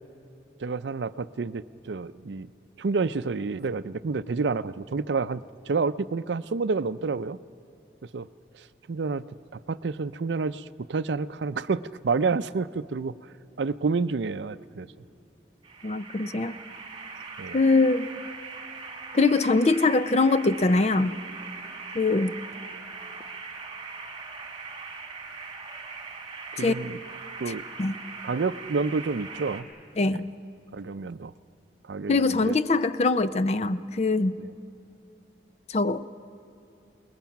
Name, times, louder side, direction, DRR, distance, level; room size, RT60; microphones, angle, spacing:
voice 1, 0.6-2.5 2.8-7.4 8.1-8.3 8.9-10.6 10.9-13.1 13.6-14.9 17.4-17.6 26.5-27.0 27.4-27.6 28.2-29.7 30.1-30.2 30.7-31.3 31.9-32.6 34.4-34.5, right 4 dB, 75° right, 14 dB, 0.5 m, -29 dB
sound 1, 15.6-29.6, right 4 dB, 25° right, 2.1 m, -40 dB
voice 2, 15.8-16.6 17.5-18.1 19.1-21.2 21.9-22.3 26.6-26.7 27.5-27.9 30.0-30.3 32.1-34.4 35.7-36.0, left 3 dB, 35° left, 13 dB, 0.5 m, -23 dB
28.5 x 20.0 x 5.9 m, 2.7 s
head